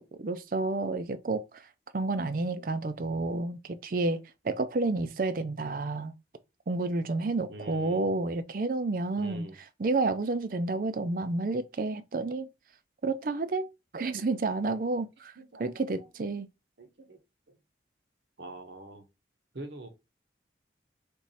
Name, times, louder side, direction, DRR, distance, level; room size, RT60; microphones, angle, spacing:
voice 1, 0.0-1.6 1.9-4.2 4.4-6.1 6.7-9.5 9.8-12.5 13.0-13.7 13.9-15.3 15.6-16.5, right 3 dB, 50° right, 0.4 m, -30 dB
voice 2, 7.5-8.1 9.2-9.6 15.4-16.1 16.8-17.2 17.5-17.6 18.4-19.0 19.5-19.9, right 2 dB, 75° right, 1.0 m, -45 dB
3.5 x 3.1 x 4.1 m
head